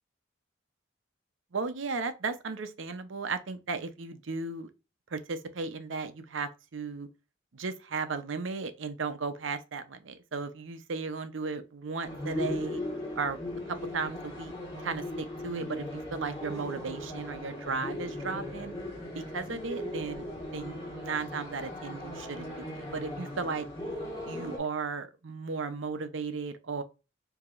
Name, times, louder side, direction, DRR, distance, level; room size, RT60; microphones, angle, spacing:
voice 1, 1.5-4.7 5.1-7.1 7.5-12.8 13.2-13.4 13.7-14.5 14.8-18.7 19.1-20.3 20.5-23.6 24.2-26.8, right 4 dB, 85° right, 0.7 m, -35 dB
sound 1, 12.0-24.6, left 1 dB, 20° left, 1.3 m, -38 dB
4.8 x 2.8 x 2.5 m
head